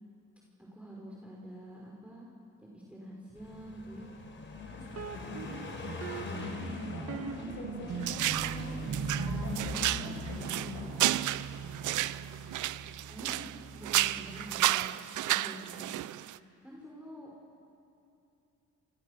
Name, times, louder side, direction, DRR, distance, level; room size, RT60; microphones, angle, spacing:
voice 1, 0.7-2.3 2.6-4.1 7.0-7.6 13.1-13.4 13.7-15.9 16.6-17.3, right 1 dB, 5° right, -4 dB, 5.7 m, -47 dB
Car passing by, 3.4-11.8, left 2 dB, 40° left, 4.9 m, -43 dB
voice 2, 4.5-5.5 6.2-11.2, left 3 dB, 75° left, 0 dB, 6.4 m, -43 dB
sound 1, 4.9-14.7, right 6 dB, 55° right, 1.6 m, -41 dB
sound 2, 8.0-8.6 8.9-13.6 13.8-16.4, right 15 dB, 80° right, 0.7 m, -31 dB
30.0 x 28.0 x 6.8 m, 2.7 s
cardioid pair, 90°, 30 cm